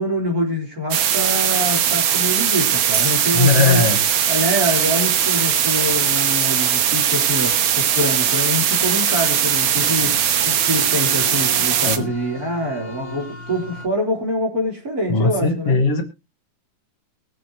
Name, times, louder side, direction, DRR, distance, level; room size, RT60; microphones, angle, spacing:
voice 1, 0.0-3.8 4.3-10.2 10.4-15.8, equal, 25° right, 0 dB, 4.0 m, -25 dB
sound 1, 0.9-12.0, right 9 dB, 85° right, 1.1 m, -19 dB
Bell, 2.9-6.1 7.3-7.4, right 6 dB, 55° right, 1.1 m, -34 dB
voice 2, 3.3-4.0 11.9-12.1 15.1-16.0, left 3 dB, 50° left, 4 dB, 2.6 m, -18 dB
sound 2, 9.6-13.9, left 1 dB, 30° left, 1.9 m, -36 dB
22.5 x 7.5 x 3.1 m, 0.27 s
omnidirectional pair, 3.7 m